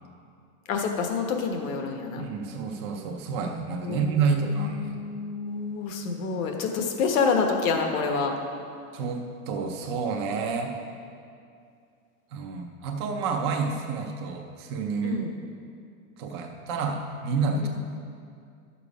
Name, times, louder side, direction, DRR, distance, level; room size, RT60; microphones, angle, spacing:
voice 1, 0.7-2.3 3.8-8.3 15.0-15.4 17.6-17.7, left 5 dB, 65° left, 3 dB, 1.4 m, -28 dB
voice 2, 2.2-4.9 8.9-10.7 12.3-15.2 16.2-17.7, right 4 dB, 20° right, 2 dB, 0.3 m, -29 dB
11.5 x 6.9 x 4.8 m, 2.4 s
supercardioid pair, 160°, 43 cm